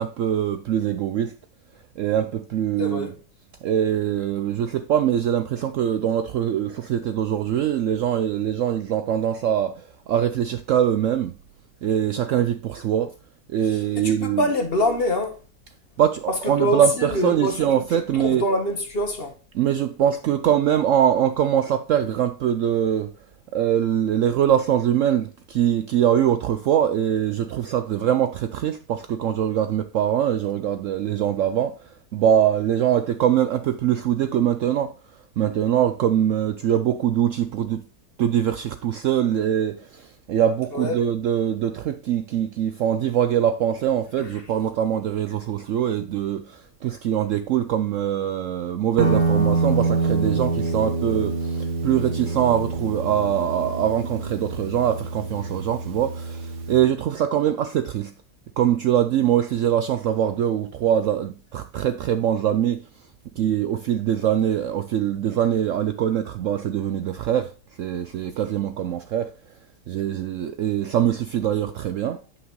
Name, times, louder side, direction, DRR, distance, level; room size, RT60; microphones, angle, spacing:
voice 1, 0.0-1.3 2.0-3.1 3.6-11.3 11.8-13.1 13.5-14.5 16.0-18.4 19.5-23.1 23.5-34.9 35.4-37.8 38.2-58.1 58.6-62.8 63.4-67.5 67.8-69.3 69.9-72.2, right 10 dB, 70° right, 0.7 m, -23 dB
voice 2, 2.8-3.1 14.0-15.4 16.6-17.6 18.2-19.3 40.7-41.0 44.2-44.3, left 1 dB, 40° left, 1.2 m, -24 dB
Guitar, 49.0-56.8, right 3 dB, 85° right, 1.7 m, -26 dB
9.8 x 5.8 x 3.0 m
omnidirectional pair, 1.7 m